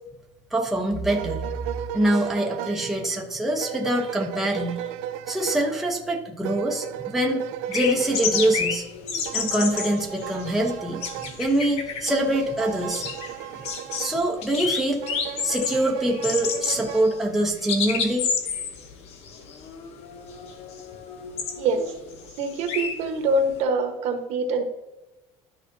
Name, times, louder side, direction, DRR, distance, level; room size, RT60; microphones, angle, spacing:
voice 1, 0.5-1.4 1.9-4.9 5.3-8.8 9.3-11.0 11.4-13.1 14.0-15.0 15.4-18.3, right 1 dB, ahead, -1 dB, 0.9 m, -24 dB
sound 1, 1.1-14.5 15.0-17.1, right 12 dB, 80° right, 0.6 m, -36 dB
sound 2, 7.7-23.6, left 6 dB, 55° left, 1.0 m, -31 dB
voice 2, 21.6-21.9 22.4-24.6, right 2 dB, 60° right, 4 dB, 1.3 m, -24 dB
12.5 x 4.9 x 2.7 m, 1.0 s
cardioid pair, 155°, 13 cm